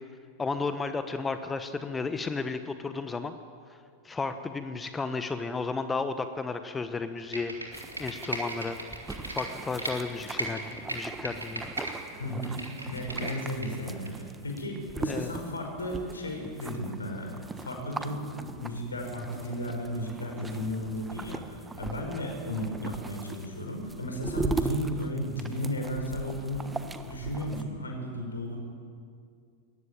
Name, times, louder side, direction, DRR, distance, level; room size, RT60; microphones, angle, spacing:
voice 1, 0.4-3.3 4.0-8.8 9.3-11.7 15.1-15.3, left 4 dB, 15° left, 10 dB, 1.1 m, -33 dB
Computer keyboard, 7.2-9.9 10.3-11.9 12.3-13.7 14.1-14.2, right 2 dB, 85° right, 3.8 m, -36 dB
sound 1, 7.7-27.6, right 3 dB, 10° right, 1.3 m, -40 dB
voice 2, 12.2-12.6 12.9-17.3 17.6-26.7 27.0-28.6, equal, 75° left, 3 dB, 5.3 m, -34 dB
22.0 x 18.0 x 9.0 m, 2.3 s
figure-of-eight pair, 90°, 0 cm